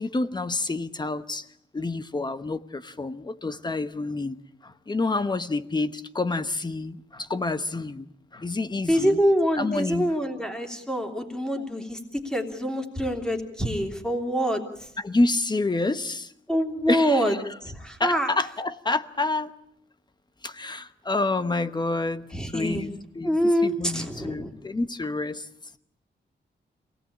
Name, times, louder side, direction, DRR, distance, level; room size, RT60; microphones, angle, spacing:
voice 1, 0.0-1.5 1.7-9.2 9.5-10.1 15.0-16.3 16.9-17.2 18.0-19.5 20.4-23.4 23.6-25.5, left 2 dB, 20° left, 12 dB, 1.0 m, -28 dB
voice 2, 8.9-14.9 16.5-18.3 22.3-22.8 23.2-24.5, equal, 5° left, 4 dB, 3.1 m, -25 dB
27.0 x 18.5 x 8.7 m, 0.74 s
wide cardioid pair, 180°, 19 cm